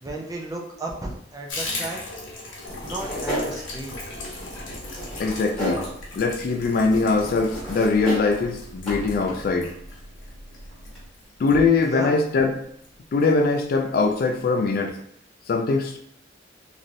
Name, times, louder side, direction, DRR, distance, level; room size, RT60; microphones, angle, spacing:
voice 1, 0.0-2.0 2.8-4.0 11.8-12.2, right 2 dB, 20° right, 0 dB, 0.4 m, -34 dB
Water tap faucet / Bathtub (filling or washing), 1.5-12.4 12.8-12.9 13.2-13.3 13.6-14.1 14.3-14.4 14.7-14.8, left 2 dB, 75° left, 0.8 m, -38 dB
sound 1, 2.7-11.1, equal, ahead, 1.2 m, -34 dB
voice 2, 5.2-5.8 6.1-9.7 11.4-12.5 13.1-15.0 15.5-16.0, left 4 dB, 50° left, 4 dB, 0.3 m, -22 dB
3.1 x 2.6 x 2.5 m, 0.67 s
head